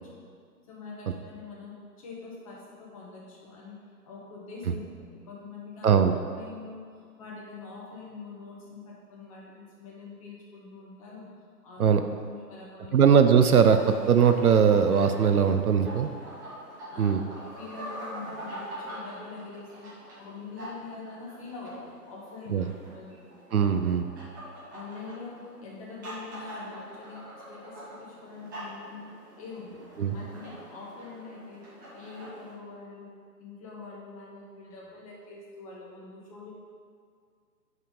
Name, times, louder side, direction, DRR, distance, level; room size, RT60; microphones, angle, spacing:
voice 1, 0.7-3.7 4.0-5.9 6.3-6.8 7.2-11.3 11.6-11.9 12.3-13.0 16.0-16.1 16.9-19.9 20.2-23.2 23.6-23.7 24.7-29.1 29.4-29.9 30.1-31.6 31.9-33.1 33.4-36.5, left 4 dB, 20° left, -4 dB, 1.1 m, -44 dB
voice 2, 5.8-6.1 11.8-12.0 12.9-16.1 17.0-17.2 22.5-22.7 23.5-24.0 30.0-30.2, right 7 dB, 60° right, 8 dB, 0.5 m, -20 dB
sound 1, 13.5-32.5, equal, 10° right, 0.8 m, -44 dB
5.8 x 5.6 x 5.3 m, 2.1 s
figure-of-eight pair, 145°, 50 cm